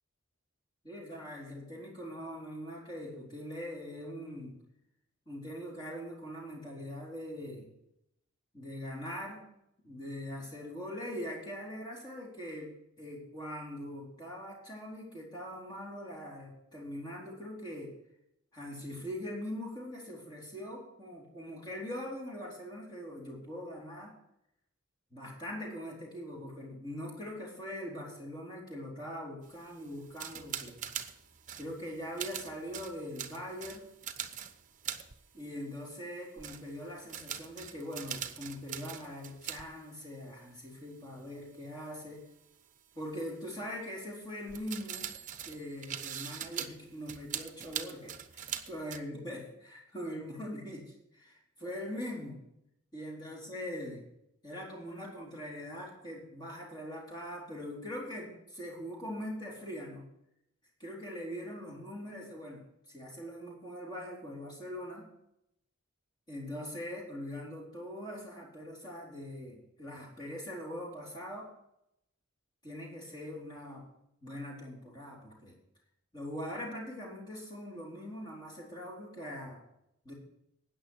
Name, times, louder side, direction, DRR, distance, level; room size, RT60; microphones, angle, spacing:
voice 1, 0.8-4.6 5.3-7.7 8.5-9.5 9.8-18.0 18.5-24.2 25.1-30.8 31.6-33.9 35.3-42.3 43.0-45.1 45.5-52.4 52.9-54.1 54.4-60.1 60.8-65.1 66.3-71.5 72.6-73.9 74.2-75.6 76.1-79.6 80.0-80.1, equal, 20° left, -3 dB, 4.1 m, -42 dB
sound 1, 29.4-36.1 36.4-39.6 39.9-40.0 41.8-41.9 44.5-49.0, right 9 dB, 35° right, 0.9 m, -42 dB
13.5 x 9.4 x 4.8 m, 0.80 s
head